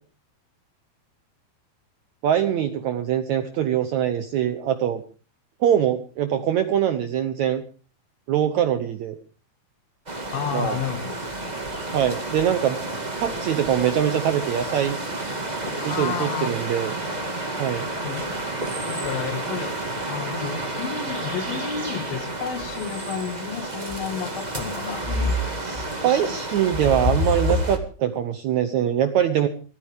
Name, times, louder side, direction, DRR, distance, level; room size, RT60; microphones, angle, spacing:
voice 1, 2.2-5.0 5.6-7.6 8.3-9.2 10.5-10.7 11.9-12.8 13.2-15.0 15.8-17.1 17.6-17.9 25.6-29.5, right 10 dB, 70° right, 9 dB, 1.8 m, -23 dB
sound 1, 10.1-27.8, right 1 dB, 35° right, 0.6 m, -29 dB
voice 2, 10.3-11.2 15.8-16.6 18.0-18.4 18.9-19.7 20.1-25.4, left 7 dB, 70° left, 7 dB, 3.6 m, -31 dB
23.0 x 15.0 x 3.6 m, 0.37 s
omnidirectional pair, 4.3 m